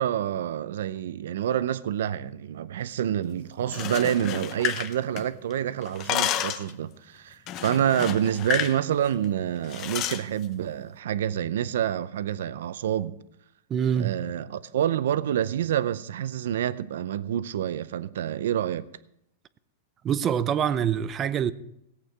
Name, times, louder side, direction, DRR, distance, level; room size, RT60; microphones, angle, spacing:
voice 1, 0.0-13.2 14.0-18.9, right 10 dB, 80° right, 0.5 m, -27 dB
sound 1, 3.6-5.5 5.8-6.7 7.5-8.8 9.1-9.2 9.7-10.2, left 11 dB, 35° left, 0.8 m, -30 dB
voice 2, 13.7-14.2 20.0-21.5, right 8 dB, 25° right, 0.5 m, -25 dB
17.5 x 8.8 x 4.6 m
supercardioid pair, 150°, 0 cm